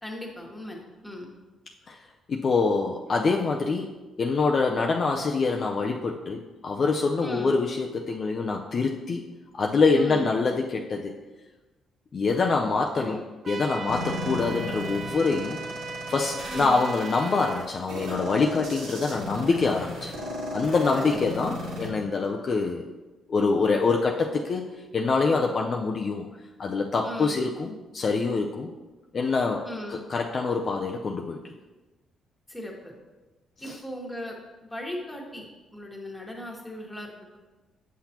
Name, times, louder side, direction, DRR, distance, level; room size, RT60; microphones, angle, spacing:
voice 1, 0.0-1.3 7.2-7.5 10.0-10.3 12.9-13.2 16.5-16.8 20.9-21.2 27.0-27.4 29.6-30.0 32.5-32.9 33.6-34.3 34.6-35.4 35.7-37.4, left 1 dB, 10° left, -1 dB, 1.5 m, -38 dB
voice 2, 2.3-3.9 4.2-9.3 9.5-11.1 12.1-13.2 13.5-15.6 16.1-20.1 20.5-22.8 23.3-24.7 24.9-26.2 26.6-28.7 29.1-31.4 33.6-33.8, left 4 dB, 45° left, 1 dB, 0.5 m, -25 dB
sound 1, 13.4-17.6, right 4 dB, 40° right, 0.4 m, -38 dB
sound 2, 13.9-21.9, left 1 dB, 85° right, 2.0 m, -35 dB
8.3 x 5.8 x 2.9 m, 1.2 s
cardioid pair, 90°, 0 cm